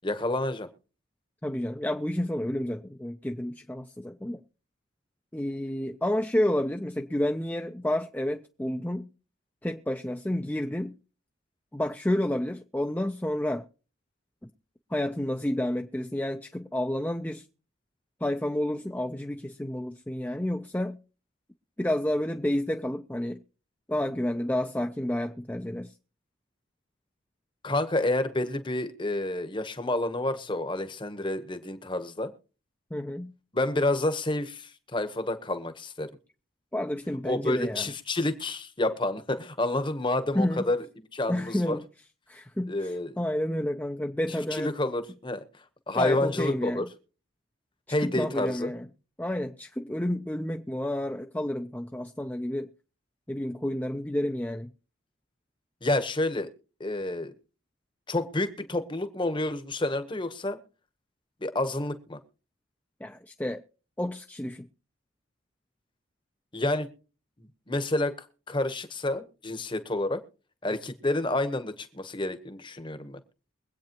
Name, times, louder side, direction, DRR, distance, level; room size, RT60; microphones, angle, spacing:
voice 1, 0.0-0.7 27.6-32.3 33.5-36.1 37.2-40.9 41.1-41.8 42.7-43.2 44.5-45.4 45.9-46.8 47.9-48.7 55.8-56.5 56.8-57.3 58.1-60.6 61.4-62.2 66.5-66.9 67.4-70.2 70.6-73.2, left 2 dB, 25° left, 1.0 m, -29 dB
voice 2, 1.4-4.4 5.3-9.1 9.6-10.9 11.7-13.7 14.4-14.5 14.9-17.4 18.2-21.0 21.8-23.4 23.9-25.9 32.9-33.3 36.7-37.9 40.3-40.7 41.3-41.8 42.3-44.7 45.9-46.9 48.0-48.9 49.2-52.7 53.3-54.7 63.0-63.6 64.0-64.7, left 1 dB, 10° left, 0.5 m, -30 dB
23.5 x 8.6 x 3.0 m
head